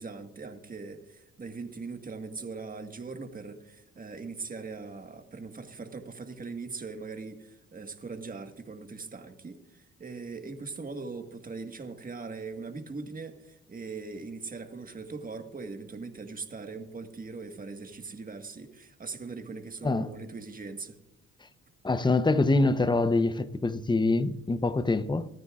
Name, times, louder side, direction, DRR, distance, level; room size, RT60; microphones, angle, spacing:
voice 1, 0.0-21.0, right 4 dB, 30° right, 1.6 m, -40 dB
voice 2, 21.8-25.3, left 3 dB, 15° left, 0.7 m, -25 dB
28.0 x 9.5 x 2.4 m
cardioid pair, 90°, 30 cm